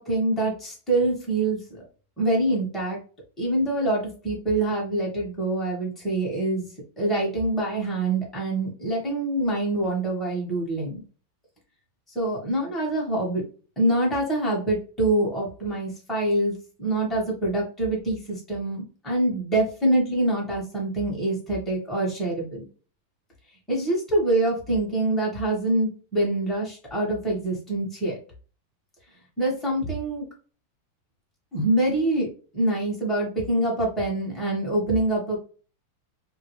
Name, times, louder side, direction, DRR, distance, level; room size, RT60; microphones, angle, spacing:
voice 1, 0.0-1.8 2.2-3.0 3.4-6.7 7.0-11.0 12.1-13.4 13.8-22.6 23.7-28.2 29.4-30.3 31.5-32.3 32.5-35.4, right 1 dB, ahead, -5 dB, 0.5 m, -25 dB
3.6 x 2.2 x 3.0 m, 0.38 s
omnidirectional pair, 2.4 m